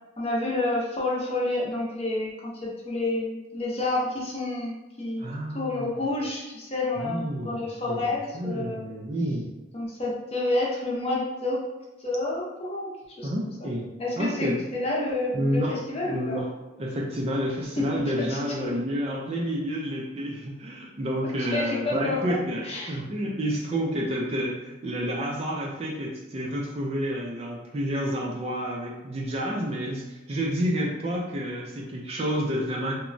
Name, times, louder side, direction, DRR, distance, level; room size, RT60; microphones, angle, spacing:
voice 1, 0.2-5.3 5.5-8.8 9.7-11.6 12.0-12.9 13.2-13.5 14.0-16.4 17.8-17.9 18.2-18.7 21.4-23.0, left 2 dB, 30° left, -4 dB, 0.6 m, -29 dB
voice 2, 5.2-5.9 7.0-9.5 13.2-13.9 14.2-14.6 15.3-16.5 16.8-32.9, equal, 30° right, -2 dB, 0.3 m, -29 dB
2.9 x 2.2 x 2.5 m, 1.1 s
head